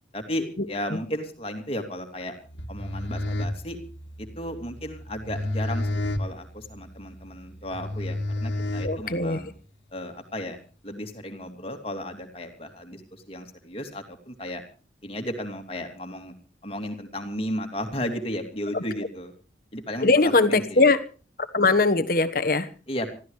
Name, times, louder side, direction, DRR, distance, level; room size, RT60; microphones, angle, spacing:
voice 1, 0.1-2.4 2.7-3.8 4.2-9.5 9.9-14.6 15.0-16.3 16.6-19.3 19.7-20.8 22.9-23.1, left 1 dB, 30° left, 5 dB, 2.7 m, -34 dB
sound 1, 2.5-9.5, left 1 dB, 80° left, 1.9 m, -31 dB
voice 2, 8.8-9.4 18.7-18.8 20.0-21.0 21.5-22.7, left 3 dB, 50° left, 11 dB, 1.3 m, -20 dB
26.0 x 14.5 x 3.2 m, 0.36 s
head